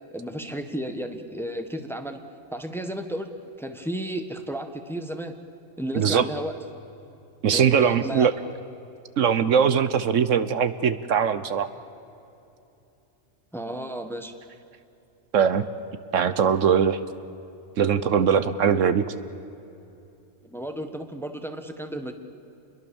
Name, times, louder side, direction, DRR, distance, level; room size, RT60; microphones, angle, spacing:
voice 1, 0.1-2.2 2.5-3.3 3.6-5.4 5.8-6.5 7.5-8.3 13.5-14.3 20.4-22.1, right 1 dB, ahead, 6 dB, 1.4 m, -33 dB
voice 2, 5.9-6.3 7.4-8.3 9.2-11.7 15.3-15.6 16.1-17.0 17.8-19.0, right 7 dB, 70° right, 12 dB, 1.2 m, -21 dB
29.0 x 22.0 x 7.2 m, 2.8 s
omnidirectional pair, 1.4 m